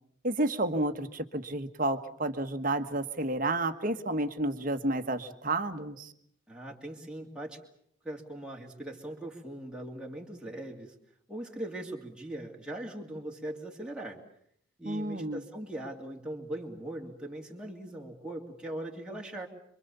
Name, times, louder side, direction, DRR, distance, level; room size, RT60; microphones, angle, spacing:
voice 1, 0.2-6.1 14.8-15.4, right 2 dB, 40° right, 9 dB, 1.6 m, -31 dB
voice 2, 6.5-7.6 8.0-11.0 11.3-14.2 14.8-19.5, right 1 dB, 5° right, -1 dB, 2.5 m, -40 dB
27.0 x 24.0 x 7.0 m, 0.69 s
head